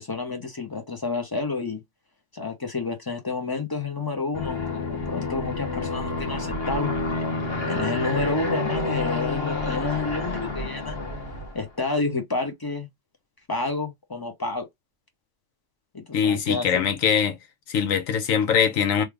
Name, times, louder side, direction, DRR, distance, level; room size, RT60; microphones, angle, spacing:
voice 1, 0.0-1.8 2.3-6.9 7.7-11.0 11.5-12.9 13.5-14.7 15.9-16.9, left 3 dB, 25° left, 0.5 m, -29 dB
Aircraft, 4.3-11.7, left 2 dB, 50° left, 1.3 m, -29 dB
voice 2, 16.1-17.4 17.7-19.0, left 7 dB, 85° left, 1.2 m, -22 dB
3.2 x 2.3 x 3.4 m
omnidirectional pair, 1.3 m